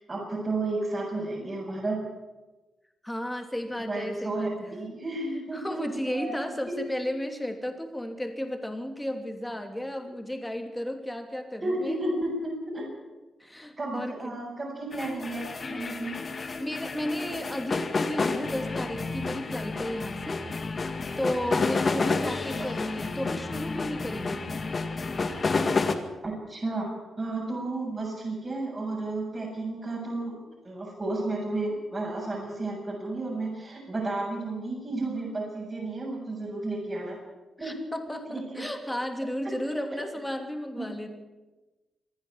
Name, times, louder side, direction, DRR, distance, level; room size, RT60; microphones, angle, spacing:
voice 1, 0.1-2.0 3.8-6.8 11.6-12.9 13.8-16.2 26.2-26.9 27.2-30.4 30.6-37.2 37.6-37.8 38.3-38.7 40.8-40.9, right 2 dB, 30° right, 0 dB, 7.4 m, -32 dB
voice 2, 3.0-4.7 5.5-12.0 13.4-14.4 16.6-20.4 21.2-24.8 37.6-41.1, left 1 dB, 5° left, 5 dB, 3.0 m, -33 dB
sound 1, 14.9-25.9, left 4 dB, 40° left, 2.0 m, -30 dB
25.5 x 10.5 x 9.9 m, 1.2 s
cardioid pair, 95°, 0 cm